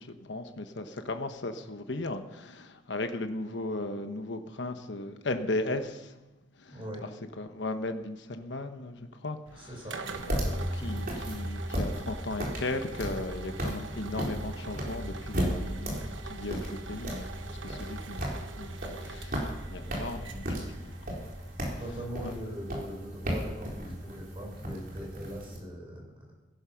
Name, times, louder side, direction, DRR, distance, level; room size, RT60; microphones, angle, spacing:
voice 1, 0.0-6.1 6.6-6.8 7.4-9.7 10.3-20.9, left 2 dB, 70° left, 7 dB, 1.1 m, -36 dB
voice 2, 6.6-7.0 9.5-10.0 21.7-26.3, equal, 30° right, -1 dB, 5.0 m, -41 dB
sound 1, 9.5-22.0, right 4 dB, 80° right, 1.2 m, -45 dB
sound 2, 10.1-25.6, equal, 50° right, 3.9 m, -35 dB
16.5 x 11.0 x 5.8 m, 1.1 s
head